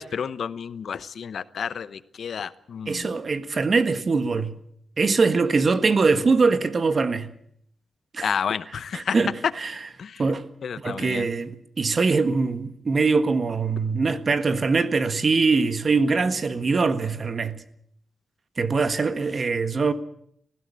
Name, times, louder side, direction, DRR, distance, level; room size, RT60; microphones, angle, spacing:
voice 1, 0.0-3.1 8.2-9.2 10.0-10.2 10.6-11.3, left 7 dB, 70° left, 0.8 m, -31 dB
voice 2, 2.9-4.6 5.0-7.3 8.1-8.3 8.9-9.8 10.2-10.5 10.8-17.6 18.6-19.9, right 4 dB, 45° right, 1.5 m, -22 dB
19.5 x 15.5 x 8.7 m
cardioid pair, 90°, 0 cm